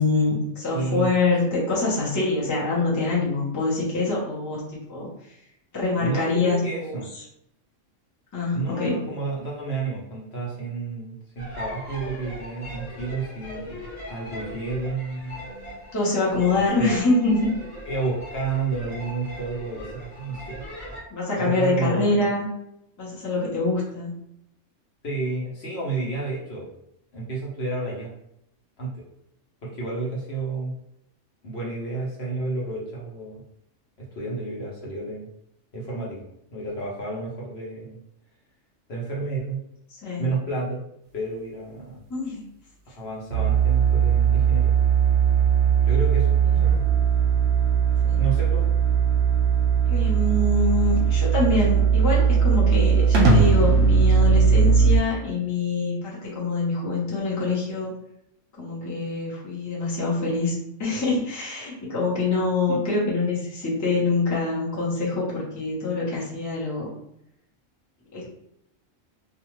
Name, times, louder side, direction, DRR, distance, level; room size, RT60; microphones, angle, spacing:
voice 1, 0.0-4.6 4.9-5.1 5.7-7.0 8.3-9.0 15.9-17.5 21.1-22.5 23.0-24.2 39.9-40.3 42.1-42.4 46.6-46.7 48.0-48.2 49.9-57.9 58.6-66.9 68.1-68.3, left 3 dB, 15° left, -6 dB, 0.7 m, -25 dB
voice 2, 0.7-1.1 6.0-7.1 8.5-13.8 14.1-15.4 16.4-16.9 17.9-20.6 21.4-22.3 25.0-26.7 27.1-28.1 28.8-29.0 29.6-30.7 31.4-33.4 34.0-35.3 35.7-36.2 36.5-38.0 38.9-39.6 40.2-40.8 41.1-42.0 43.0-44.7 45.8-46.8 48.2-48.7 62.7-63.0, right 3 dB, 60° left, -5 dB, 1.0 m, -31 dB
sound 1, 11.4-21.0, equal, 35° left, 1.1 m, -39 dB
sound 2, 43.3-55.0, right 6 dB, 65° right, 0.8 m, -19 dB
2.4 x 2.4 x 3.0 m, 0.77 s
omnidirectional pair, 1.3 m